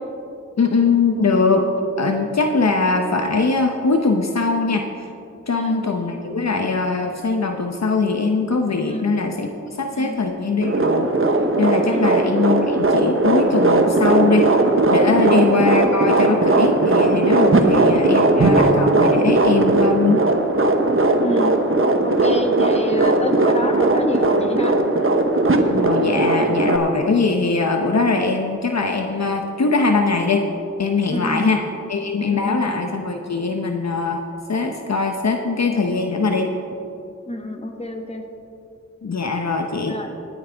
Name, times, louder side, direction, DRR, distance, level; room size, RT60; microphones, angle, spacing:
voice 1, 0.6-1.7 2.0-4.9 5.5-9.5 9.8-11.1 11.6-14.5 14.9-20.2 25.7-30.4 30.8-31.6 31.9-34.2 34.5-36.5 39.0-40.0, left 4 dB, 60° left, 4 dB, 0.8 m, -21 dB
voice 2, 5.5-5.8 8.9-9.1 9.9-10.1 11.8-12.1 15.2-15.5 17.6-17.9 21.2-21.5 22.0-24.7 31.1-31.5 32.3-32.7 37.3-38.2 39.8-40.1, left 1 dB, 20° left, 3 dB, 1.5 m, -28 dB
sound 1, 10.6-26.8, right 2 dB, 45° right, 1.0 m, -18 dB
18.5 x 8.9 x 3.5 m, 2.7 s
cardioid pair, 40°, 30 cm